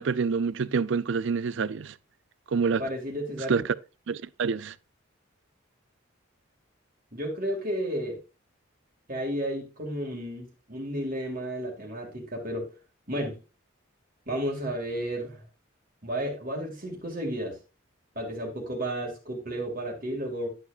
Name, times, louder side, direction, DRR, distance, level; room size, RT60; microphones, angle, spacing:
voice 1, 0.0-2.0 2.5-2.8 3.5-3.8 4.1-4.8, right 5 dB, 65° right, 0.4 m, -27 dB
voice 2, 2.6-3.6 7.1-8.2 9.1-12.7 13.1-13.4 14.3-15.4 16.0-17.6 18.2-20.5, right 1 dB, 45° right, 2.4 m, -32 dB
11.0 x 7.1 x 2.5 m
head